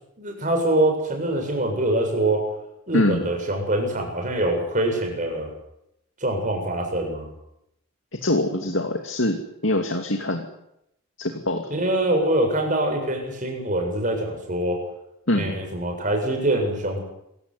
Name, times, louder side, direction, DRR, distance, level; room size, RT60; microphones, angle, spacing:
voice 1, 0.2-2.5 2.9-5.5 6.2-7.3 11.7-14.8 15.3-17.0, right 1 dB, 35° right, 3 dB, 7.5 m, -24 dB
voice 2, 2.9-3.3 8.1-10.5 11.2-11.7 15.3-15.6, left 1 dB, 60° left, 4 dB, 2.5 m, -24 dB
27.0 x 16.5 x 9.8 m, 0.81 s
head